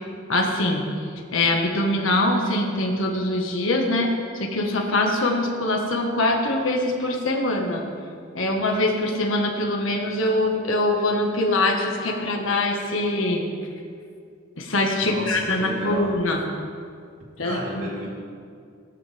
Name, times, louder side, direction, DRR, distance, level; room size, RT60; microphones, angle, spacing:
voice 1, 0.3-0.8 1.3-4.1 4.4-7.8 8.3-13.4 14.6-16.4 17.4-17.8, left 2 dB, 80° left, 1 dB, 1.7 m, -23 dB
voice 2, 15.0-16.2 17.4-18.1, right 1 dB, 75° right, -4 dB, 3.5 m, -32 dB
18.5 x 13.5 x 3.5 m, 2.3 s
head